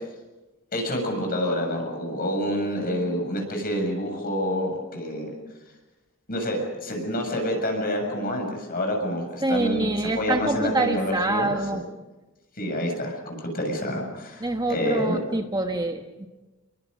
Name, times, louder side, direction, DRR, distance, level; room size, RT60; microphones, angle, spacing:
voice 1, 0.7-5.3 6.3-11.8 12.6-15.2, equal, 45° left, 3 dB, 6.9 m, -28 dB
voice 2, 9.4-11.8 14.4-16.3, right 2 dB, 20° right, 4 dB, 1.3 m, -26 dB
29.0 x 23.5 x 5.3 m, 1.1 s
head